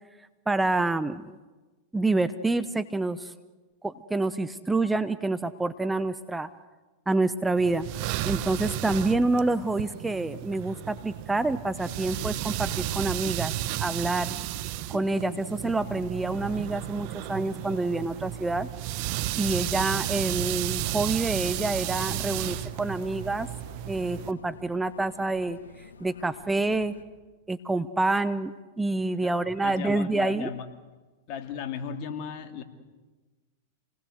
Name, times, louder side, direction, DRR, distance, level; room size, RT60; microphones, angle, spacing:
voice 1, 0.5-1.4 1.9-3.3 3.8-6.5 7.1-7.9 8.2-13.5 13.8-14.3 14.9-18.7 19.4-23.5 23.9-25.6 26.0-26.9 27.5-30.5, right 2 dB, 10° right, 12 dB, 0.8 m, -27 dB
sound 1, 7.6-24.3, right 14 dB, 50° right, 1.1 m, -33 dB
sound 2, 20.7-27.0, left 4 dB, 80° left, 1.9 m, -49 dB
voice 2, 29.2-30.7 31.3-32.6, left 7 dB, 50° left, 6 dB, 2.7 m, -36 dB
28.0 x 19.5 x 8.0 m, 1.3 s
hypercardioid pair, 100°, 0 cm